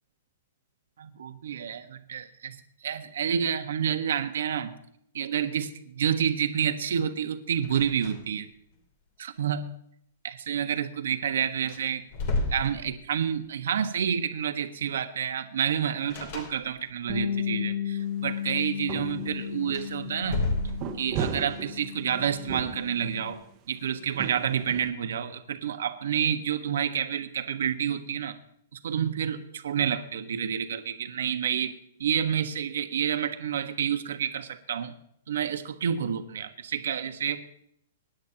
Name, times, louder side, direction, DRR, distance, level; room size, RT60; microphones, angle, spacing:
voice 1, 1.0-4.8 5.1-8.5 9.2-9.7 10.2-12.0 12.5-20.4 21.0-23.4 23.7-28.4 28.7-34.9 35.3-37.4, right 8 dB, 75° right, 7 dB, 1.3 m, -29 dB
sound 1, 7.6-8.5 8.7-8.8 11.1-11.2 11.6-13.3 16.1-17.1 19.6-21.3, left 2 dB, 40° left, 3.0 m, -32 dB
Bass guitar, 17.1-23.3, left 9 dB, 15° left, 2.1 m, -34 dB
sound 2, 18.0-18.1 18.5-20.4 20.7-23.1 24.0-24.9, right 7 dB, 25° right, 1.3 m, -36 dB
24.0 x 10.5 x 2.8 m, 0.71 s
hypercardioid pair, 170°, 0 cm